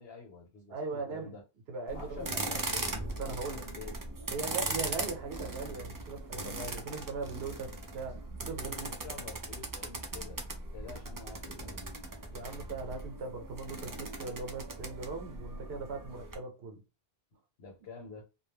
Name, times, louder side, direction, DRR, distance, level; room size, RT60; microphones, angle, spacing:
voice 1, 0.0-1.4 1.9-3.0 3.3-4.6 8.6-10.4 10.7-12.0 17.6-18.2, left 4 dB, 80° left, 1.1 m, -48 dB
voice 2, 0.7-1.4 1.7-2.3 3.2-3.6 4.3-8.9 12.3-16.8, right 4 dB, 75° right, 0.9 m, -39 dB
sound 1, 1.9-16.3, right 2 dB, 35° right, 0.3 m, -39 dB
2.3 x 2.1 x 3.3 m
omnidirectional pair, 1.1 m